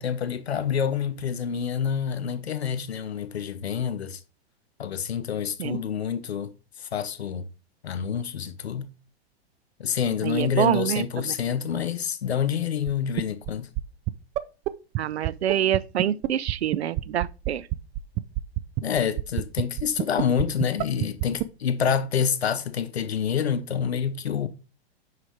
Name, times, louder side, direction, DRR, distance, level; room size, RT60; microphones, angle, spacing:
voice 1, 0.0-4.2 4.8-6.5 6.8-7.5 7.8-8.9 9.8-13.7 18.8-24.5, left 7 dB, 85° left, 0.8 m, -27 dB
voice 2, 10.2-11.3 15.0-17.7, right 10 dB, 80° right, 0.6 m, -26 dB
sound 1, 12.9-13.0 13.2-13.5 13.8-13.9 14.1-14.2 14.4-14.5 14.7-14.8 14.9-15.0 15.2-21.4, right 18 dB, 25° right, 0.4 m, -25 dB
9.8 x 4.8 x 3.5 m
hypercardioid pair, 110°, 31 cm